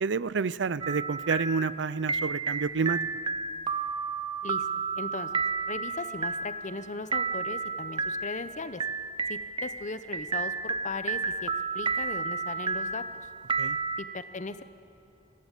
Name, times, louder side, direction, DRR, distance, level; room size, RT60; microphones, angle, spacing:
voice 1, 0.0-3.0 13.6-13.8, right 5 dB, 70° right, 18 dB, 0.5 m, -29 dB
sound 1, 0.8-14.0, right 4 dB, 25° right, 0.7 m, -32 dB
voice 2, 4.4-8.8 9.3-13.0 14.0-14.6, left 3 dB, 40° left, 12 dB, 0.8 m, -38 dB
25.5 x 16.0 x 8.3 m, 2.6 s
head